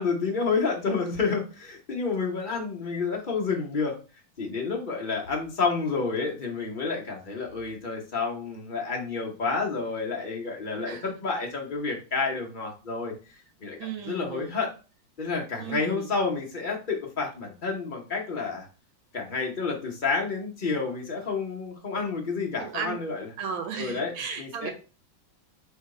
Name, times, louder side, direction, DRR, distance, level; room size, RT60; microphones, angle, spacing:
voice 1, 0.0-4.0 4.4-13.1 13.6-13.8 14.0-14.7 15.2-18.7 19.1-23.3 23.8-24.7, left 4 dB, 45° left, -1 dB, 0.6 m, -29 dB
voice 2, 10.8-11.1 13.8-14.5 15.6-16.1 22.6-23.0 23.4-24.7, right 7 dB, 90° right, 5 dB, 1.6 m, -35 dB
3.5 x 3.0 x 4.7 m, 0.34 s
omnidirectional pair, 2.2 m